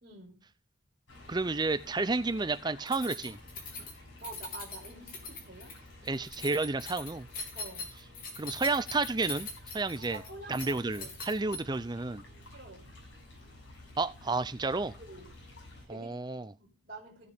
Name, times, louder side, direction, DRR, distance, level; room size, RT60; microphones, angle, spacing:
voice 1, 0.0-0.5 4.2-5.8 7.5-7.9 10.1-11.6 12.5-12.9 15.0-15.3 15.8-16.1 16.6-17.3, right 3 dB, 45° right, 3.0 m, -48 dB
sound 1, 1.1-15.9, left 1 dB, 70° left, 6.8 m, -52 dB
voice 2, 1.3-3.4 6.1-7.3 8.4-9.5 9.7-10.2 10.5-12.2 14.0-14.9 15.9-16.5, right 3 dB, 20° right, 0.5 m, -31 dB
Keys jangling, 2.9-11.9, left 3 dB, 45° left, 3.6 m, -42 dB
15.5 x 6.7 x 3.5 m
head